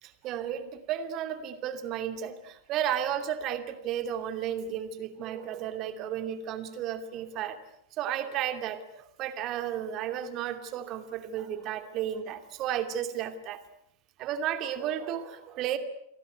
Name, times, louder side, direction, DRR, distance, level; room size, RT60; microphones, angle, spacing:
voice 1, 0.0-7.6 8.0-13.6 14.2-15.8, right 10 dB, 35° right, 9 dB, 2.7 m, -33 dB
30.0 x 23.0 x 8.1 m, 0.75 s
figure-of-eight pair, 90°, 0 cm